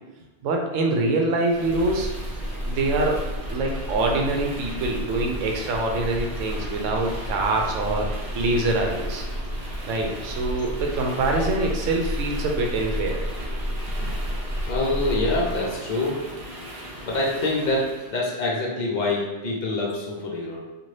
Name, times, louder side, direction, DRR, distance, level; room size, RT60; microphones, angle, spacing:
voice 1, 0.4-2.1 2.7-3.2 3.5-8.1 8.3-9.2 9.8-13.2, right 2 dB, 80° right, 1 dB, 0.9 m, -24 dB
sound 1, 1.4-18.1, equal, 50° right, 0.9 m, -31 dB
voice 2, 14.7-16.2 17.1-20.6, left 2 dB, 50° left, -3 dB, 0.6 m, -25 dB
2.6 x 2.5 x 3.1 m, 1.1 s
omnidirectional pair, 1.3 m